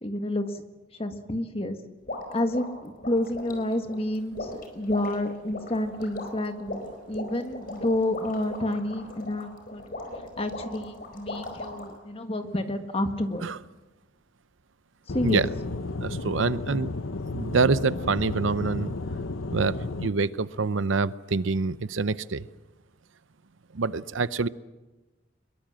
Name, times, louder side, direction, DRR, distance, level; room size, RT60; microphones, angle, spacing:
voice 1, 0.0-0.6 1.0-1.8 2.3-9.8 10.4-13.5 15.1-15.4, left 1 dB, 30° left, 7 dB, 1.6 m, -29 dB
sound 1, 2.1-12.0, left 2 dB, 45° left, 4.7 m, -38 dB
Aircraft / Engine, 15.1-20.1, left 2 dB, 85° left, 1.0 m, -33 dB
voice 2, 16.0-16.9 17.3-18.9 19.5-22.5 23.7-24.5, right 4 dB, 75° right, 16 dB, 0.7 m, -26 dB
23.0 x 22.0 x 7.7 m, 1.1 s
head